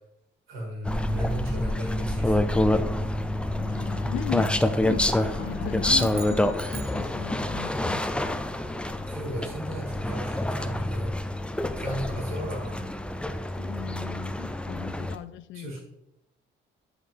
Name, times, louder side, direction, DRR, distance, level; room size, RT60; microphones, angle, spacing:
voice 1, 0.5-2.6 9.0-11.1 11.7-12.8 15.5-15.8, right 1 dB, 85° right, 2.7 m, -35 dB
sound 1, 0.8-15.2, left 1 dB, 5° left, 0.5 m, -27 dB
voice 2, 3.6-5.1 5.4-8.4 13.6-15.8, left 14 dB, 70° left, 0.4 m, -37 dB
sound 2, 3.7-8.2, left 3 dB, 40° left, 1.3 m, -40 dB
sound 3, 5.9-7.7, right 8 dB, 50° right, 0.7 m, -45 dB
10.5 x 4.8 x 3.6 m
cardioid pair, 90°, 20 cm